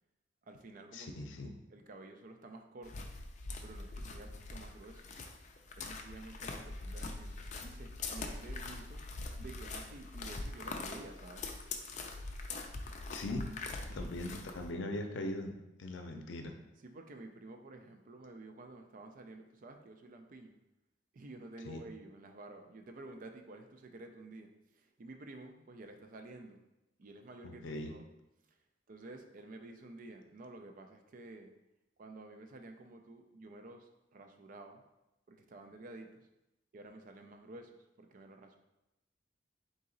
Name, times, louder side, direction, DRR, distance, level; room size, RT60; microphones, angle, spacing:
voice 1, 0.4-1.2 1.4-3.1 3.6-5.1 5.8-9.0 9.4-11.5 13.9-14.1 16.8-20.6 21.1-26.6 27.0-28.1 28.9-31.5 32.0-34.8 35.3-36.3 36.7-38.6, right 2 dB, 50° right, 5 dB, 0.4 m, -51 dB
voice 2, 0.9-1.5 13.1-13.5 13.9-16.5 21.7-21.8 27.4-27.9, left 1 dB, 90° left, 4 dB, 0.5 m, -40 dB
sound 1, 2.8-14.7, left 3 dB, 40° left, 0.4 m, -43 dB
3.9 x 2.9 x 3.8 m, 0.92 s
head